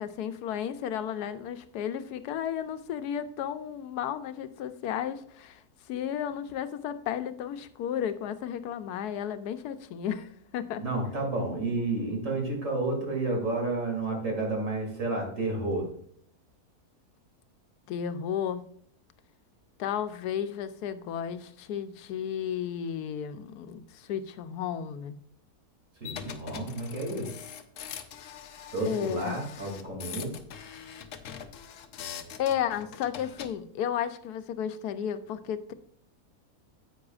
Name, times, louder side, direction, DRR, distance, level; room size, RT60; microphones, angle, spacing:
voice 1, 0.0-5.6 5.9-10.8 17.9-18.6 19.8-25.2 28.9-29.4 32.4-35.7, left 9 dB, 85° left, 11 dB, 1.2 m, -33 dB
voice 2, 10.8-15.9 26.0-27.3 28.7-30.3, right 2 dB, 55° right, 0 dB, 2.8 m, -31 dB
sound 1, 26.0-33.5, left 8 dB, 65° left, 0.9 m, -43 dB
9.7 x 8.5 x 2.4 m, 0.62 s
omnidirectional pair, 1.6 m